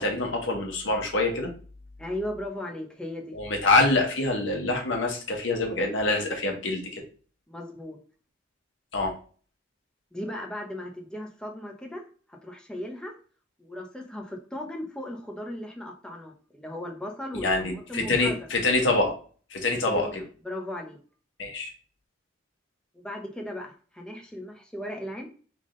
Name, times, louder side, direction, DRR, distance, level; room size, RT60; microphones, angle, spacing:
voice 1, 0.0-1.5 3.3-7.0 8.9-9.1 17.3-19.2 19.5-20.2 21.4-21.7, left 2 dB, 70° left, 1 dB, 1.4 m, -25 dB
voice 2, 2.0-3.3 7.5-8.0 10.1-13.2 13.6-18.4 19.9-20.1 20.4-21.0 22.9-25.3, left 1 dB, 5° left, 1 dB, 0.8 m, -37 dB
3.7 x 3.6 x 3.8 m, 0.40 s
head